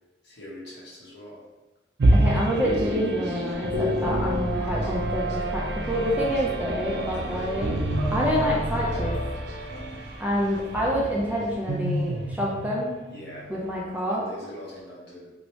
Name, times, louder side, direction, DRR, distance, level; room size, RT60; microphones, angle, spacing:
voice 1, 0.2-1.4 13.1-13.5 14.1-15.3, left 1 dB, 65° left, -7 dB, 1.2 m, -42 dB
sound 1, 2.0-13.6, right 1 dB, 70° right, 0.4 m, -28 dB
voice 2, 2.1-7.8 8.1-9.2 10.2-13.0 13.5-14.3, equal, 10° right, -4 dB, 0.5 m, -27 dB
sound 2, 4.0-11.3, equal, 45° left, 0.8 m, -34 dB
2.9 x 2.7 x 3.1 m, 1.1 s
head